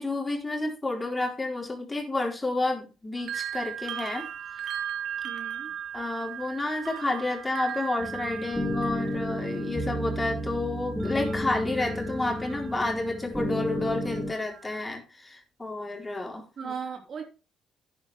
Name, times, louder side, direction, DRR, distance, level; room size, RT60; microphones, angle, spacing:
voice 1, 0.0-4.3 5.9-16.7, left 2 dB, 20° left, 4.0 m, -30 dB
sound 1, 3.2-13.2 13.6-14.8, right 9 dB, 75° right, 1.3 m, -38 dB
voice 2, 5.2-5.7 16.6-17.2, right 6 dB, 55° right, 2.6 m, -37 dB
sound 2, 8.0-14.3, equal, ahead, 2.8 m, -32 dB
11.0 x 9.7 x 3.6 m
cardioid pair, 90°, 0 cm